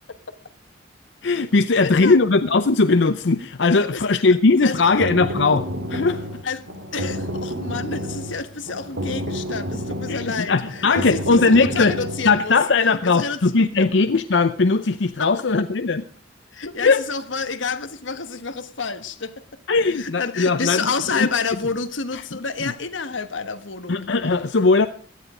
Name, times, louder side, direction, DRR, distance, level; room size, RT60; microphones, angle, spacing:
voice 1, 1.2-6.3 10.1-12.0 12.2-16.0 16.8-17.0 19.7-21.3 22.1-22.2 23.9-24.9, left 3 dB, 70° left, 10 dB, 0.7 m, -19 dB
voice 2, 1.8-2.2 3.9-4.2 4.6-4.8 6.4-6.7 6.9-12.6 13.0-13.4 13.8-13.9 15.2-15.3 16.5-19.3 20.0-24.0, left 4 dB, 90° left, 10 dB, 1.4 m, -29 dB
sound 1, 4.5-12.4, equal, 90° right, 2.6 m, -30 dB
17.5 x 12.5 x 5.0 m, 0.42 s
head